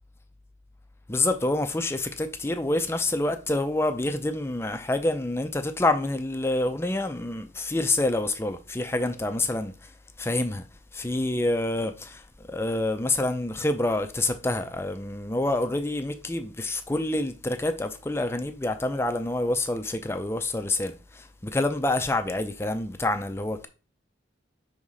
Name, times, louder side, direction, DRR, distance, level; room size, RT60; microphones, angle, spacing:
voice 1, 1.1-10.7 10.9-23.7, left 2 dB, 15° left, 0.5 m, -27 dB
5.7 x 3.6 x 5.0 m
head